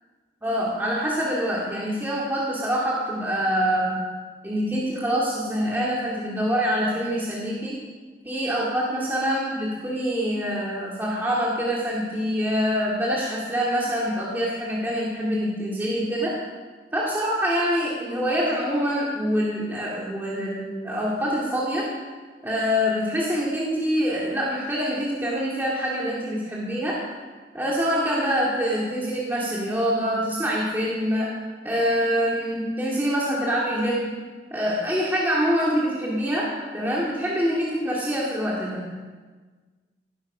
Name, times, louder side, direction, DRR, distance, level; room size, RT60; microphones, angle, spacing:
voice 1, 0.4-4.0 4.4-7.8 8.2-16.4 16.9-21.9 22.4-27.0 27.5-31.3 31.6-34.2 34.5-38.8, equal, 10° right, -5 dB, 2.2 m, -25 dB
17.0 x 12.0 x 5.5 m, 1.4 s
head